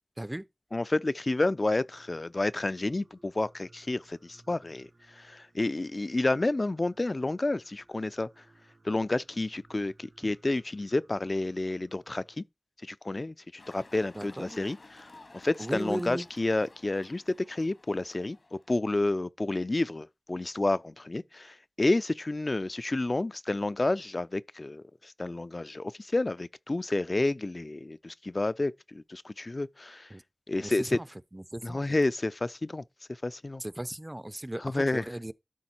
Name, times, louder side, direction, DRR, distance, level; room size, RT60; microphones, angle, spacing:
voice 1, 0.7-8.3 8.8-12.4 12.8-18.4 18.7-30.1 30.5-31.0 31.6-32.8 33.1-33.6 34.6-35.0, left 2 dB, 55° left, 0.4 m, -30 dB
Singing, 1.7-12.4, right 2 dB, 80° right, 3.1 m, -62 dB
sound 1, 13.6-18.7, left 2 dB, 80° left, 1.7 m, -54 dB
voice 2, 14.1-14.6 15.6-16.3 30.1-30.2 30.6-31.1 31.3-32.0 33.6-35.3, right 1 dB, 25° right, 0.5 m, -36 dB
12.0 x 4.7 x 4.3 m
wide cardioid pair, 40°, 0 cm